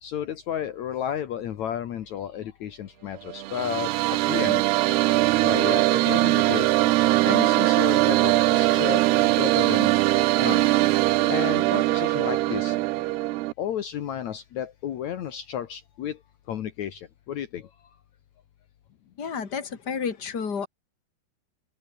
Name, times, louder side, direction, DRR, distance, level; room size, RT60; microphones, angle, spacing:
voice 1, 0.0-4.6 5.4-9.9 10.4-10.9 11.1-12.8 13.6-16.2 16.5-17.7, left 10 dB, 75° left, 1.7 m, -32 dB
sound 1, 3.3-13.5, right 18 dB, 80° right, 2.4 m, -21 dB
voice 2, 19.2-20.7, left 6 dB, 30° left, 2.4 m, -30 dB
omnidirectional pair, 5.5 m